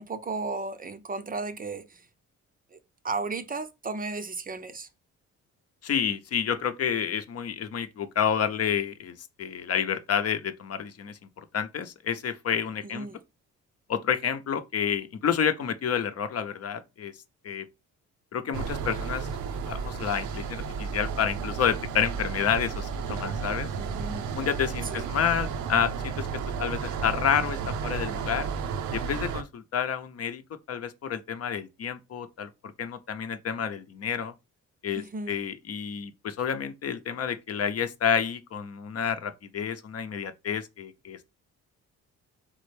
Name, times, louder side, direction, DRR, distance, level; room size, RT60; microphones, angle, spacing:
voice 1, 0.0-2.0 2.7-2.8 3.0-4.9 12.8-13.2 23.8-24.3 24.9-25.1 35.0-35.3, right 3 dB, 30° right, 0.5 m, -34 dB
voice 2, 5.8-11.2 11.5-13.1 13.9-17.1 17.4-17.7 18.3-19.3 19.7-23.7 24.3-26.3 26.6-28.5 28.9-30.4 30.7-34.3 34.8-41.2, left 8 dB, 55° left, 0.7 m, -29 dB
sound 1, 18.5-29.4, right 6 dB, 75° right, 0.6 m, -33 dB
4.3 x 3.6 x 3.3 m
cardioid pair, 90°, 30 cm